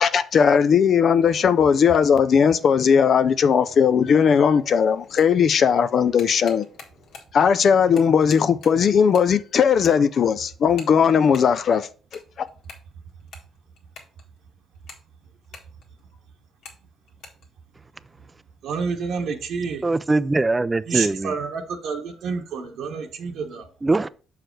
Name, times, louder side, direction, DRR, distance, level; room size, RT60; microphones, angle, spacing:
voice 1, 0.0-6.7 7.3-11.9 12.4-12.5, left 7 dB, 60° left, 0.4 m, -18 dB
sound 1, 5.0-5.4 5.9-7.4 7.7-9.3 9.6-10.2 10.7-11.6 11.9-14.4 14.7-16.1 16.6-16.8 17.1-17.5, left 4 dB, 80° left, 1.6 m, -45 dB
voice 2, 18.6-19.8 20.9-23.7, right 5 dB, 80° right, 1.2 m, -29 dB
voice 3, 19.8-21.3 23.8-24.1, right 3 dB, 20° right, 0.4 m, -21 dB
6.3 x 4.9 x 4.5 m
cardioid pair, 90°, 0 cm